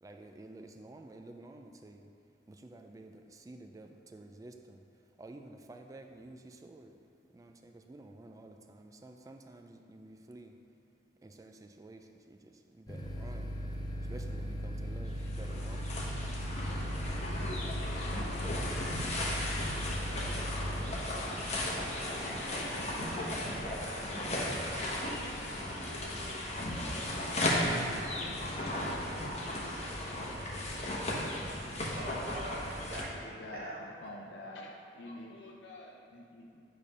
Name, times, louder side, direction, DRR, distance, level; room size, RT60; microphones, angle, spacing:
voice 1, 0.0-2.1 2.5-4.8 5.2-7.0 7.3-10.6 11.2-13.6 14.1-15.8, right 2 dB, 20° right, 5 dB, 0.3 m, -51 dB
sound 1, 12.9-20.9, equal, 25° left, 0.7 m, -38 dB
sound 2, 15.1-33.0, left 1 dB, 40° left, 1.0 m, -35 dB
voice 2, 30.8-33.8, right 1 dB, 60° right, -3 dB, 1.1 m, -45 dB
voice 3, 33.2-33.8 34.0-36.6, left 1 dB, 85° left, -1 dB, 0.6 m, -47 dB
8.8 x 3.3 x 5.3 m, 2.4 s
head